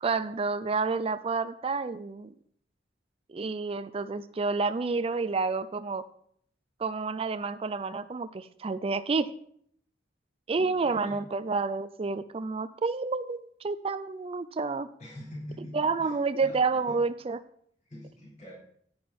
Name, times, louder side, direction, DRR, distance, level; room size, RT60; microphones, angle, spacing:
voice 1, 0.0-2.3 3.3-6.0 6.8-9.3 10.5-14.9 15.7-17.4, right 4 dB, 30° right, 12 dB, 0.4 m, -29 dB
voice 2, 10.6-11.2 15.0-16.1 16.4-17.0 17.8-18.5, left 1 dB, 40° left, -5 dB, 4.5 m, -44 dB
10.0 x 9.5 x 4.3 m, 0.64 s
head